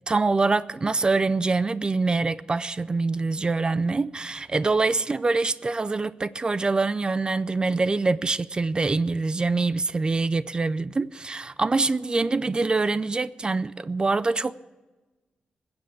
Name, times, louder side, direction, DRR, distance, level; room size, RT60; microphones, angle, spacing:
voice 1, 0.1-14.5, right 3 dB, 30° right, 0.4 m, -25 dB
20.5 x 7.9 x 8.3 m
cardioid pair, 95°, 3 cm